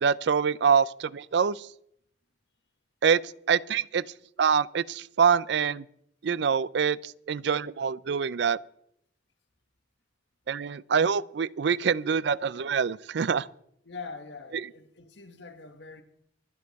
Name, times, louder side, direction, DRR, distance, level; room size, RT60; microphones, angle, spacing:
voice 1, 0.0-1.7 3.0-3.2 3.5-4.0 4.4-5.9 6.2-8.6 10.5-13.5, right 6 dB, 65° right, 0.4 m, -25 dB
voice 2, 13.8-16.0, left 4 dB, 70° left, 1.4 m, -43 dB
24.5 x 8.4 x 4.1 m
head